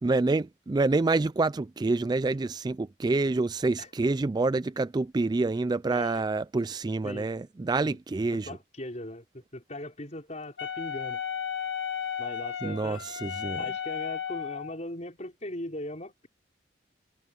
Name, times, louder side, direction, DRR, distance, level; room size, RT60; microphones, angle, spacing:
voice 1, 0.0-8.5 12.6-13.6, right 3 dB, 20° right, 0.3 m, -27 dB
voice 2, 5.9-6.2 7.0-7.3 7.8-8.0 8.3-11.2 12.2-13.0 13.6-16.3, left 1 dB, 35° left, 5.0 m, -39 dB
Wind instrument woodwind instrument, 10.6-14.8, left 8 dB, 70° left, 1.9 m, -34 dB
head